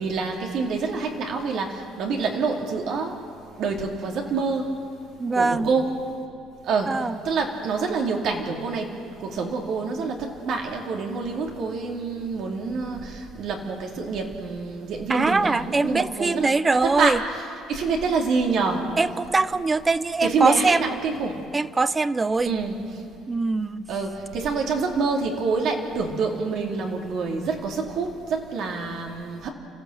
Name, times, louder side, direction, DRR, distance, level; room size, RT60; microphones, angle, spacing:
voice 1, 0.0-3.2 3.6-4.7 5.3-5.9 6.6-6.9 7.2-17.2 17.7-18.9 20.2-21.4 22.4-22.8 23.9-29.5, right 4 dB, 60° right, 1 dB, 2.7 m, -27 dB
voice 2, 5.2-5.7 6.9-7.1 15.1-17.2 19.0-20.9 21.5-22.5 23.3-23.9, right 3 dB, 15° right, 16 dB, 0.6 m, -22 dB
29.5 x 14.5 x 7.9 m, 2.5 s
cardioid pair, 135°, 0 cm